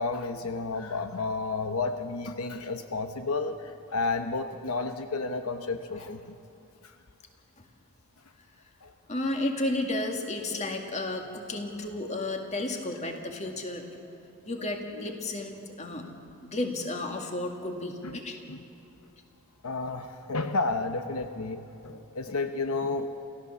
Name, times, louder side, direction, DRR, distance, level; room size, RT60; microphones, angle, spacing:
voice 1, 0.0-6.4 8.8-8.9 14.9-15.1 18.0-18.2 18.5-18.6 19.6-23.1, left 3 dB, 85° left, 8 dB, 1.0 m, -31 dB
voice 2, 9.1-14.2 14.5-16.1 16.4-18.4, left 2 dB, 30° left, 3 dB, 2.1 m, -33 dB
29.0 x 15.0 x 7.0 m, 2.7 s
head